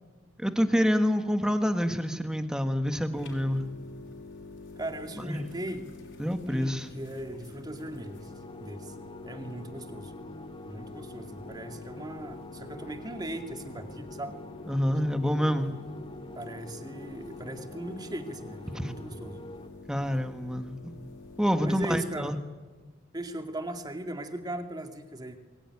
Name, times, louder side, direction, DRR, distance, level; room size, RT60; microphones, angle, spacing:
voice 1, 0.4-3.6 5.3-5.4 6.2-6.9 14.7-15.7 18.8-18.9 19.9-20.9 21.4-22.4, equal, 5° right, 8 dB, 1.7 m, -27 dB
sound 1, 3.1-21.7, left 3 dB, 70° left, 5.7 m, -47 dB
voice 2, 4.8-5.9 6.5-8.3 8.6-8.9 9.2-10.1 10.7-14.4 16.3-19.4 21.6-22.3 23.1-25.4, right 1 dB, 20° right, 6 dB, 2.2 m, -38 dB
sound 2, 7.8-19.7, left 1 dB, 25° left, 2.3 m, -47 dB
24.0 x 22.0 x 9.9 m, 1.3 s
head